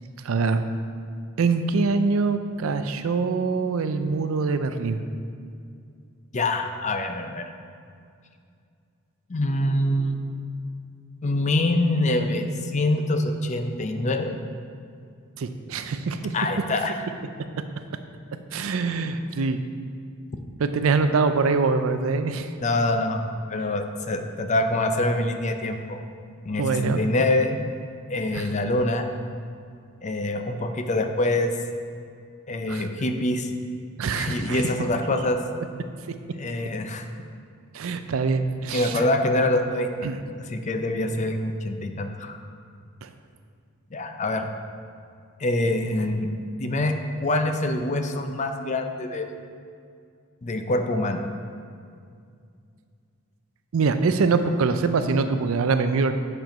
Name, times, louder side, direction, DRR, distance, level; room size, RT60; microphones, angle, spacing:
voice 1, 0.2-0.6 1.4-5.0 15.4-16.3 18.5-19.6 20.6-22.5 26.6-27.0 28.3-28.5 32.7-32.8 34.0-34.7 37.7-39.1 40.0-40.2 43.0-43.1 53.7-56.1, right 4 dB, 75° right, 9 dB, 0.4 m, -24 dB
voice 2, 6.3-7.5 9.3-10.2 11.2-12.5 12.7-14.4 16.3-17.0 22.6-23.2 23.5-26.0 26.4-27.6 28.1-29.0 30.0-31.5 32.5-33.5 34.1-35.4 36.4-37.1 38.7-39.9 40.5-42.4 43.9-44.5 45.4-46.3 46.6-49.3 50.4-51.2, left 2 dB, 35° left, 6 dB, 0.5 m, -25 dB
8.0 x 4.5 x 5.2 m, 2.3 s
head